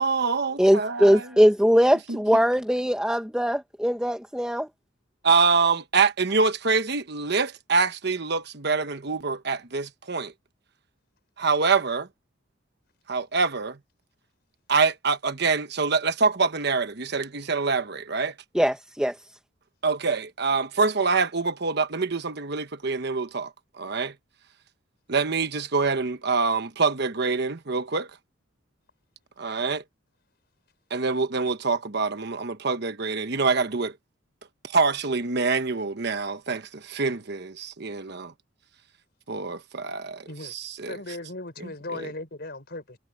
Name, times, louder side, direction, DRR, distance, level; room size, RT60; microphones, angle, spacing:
voice 1, 0.0-1.4 2.1-2.2 5.2-10.3 11.4-12.1 13.1-13.8 14.7-18.3 19.8-23.5 23.8-24.1 25.1-28.1 29.4-29.8 30.9-34.0 34.6-38.3 39.3-41.2 41.6-42.1, right 4 dB, 55° right, 1.1 m, -25 dB
voice 2, 0.6-4.7 18.5-19.1, equal, 5° right, 0.9 m, -21 dB
voice 3, 40.9-43.0, left 2 dB, 55° left, 5.2 m, -37 dB
head